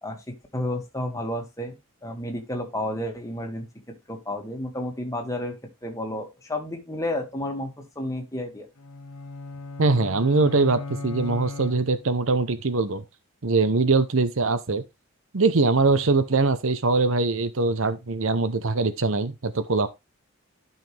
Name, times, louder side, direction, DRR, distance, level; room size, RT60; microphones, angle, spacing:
voice 1, 0.0-1.7 2.0-3.7 4.1-5.5 5.8-8.7, left 1 dB, 15° left, 2.1 m, -31 dB
sound 1, 8.8-12.3, left 3 dB, 85° left, 1.0 m, -37 dB
voice 2, 9.8-13.0 13.4-14.8 15.3-19.9, right 3 dB, 60° right, 0.8 m, -22 dB
12.0 x 5.7 x 3.4 m
head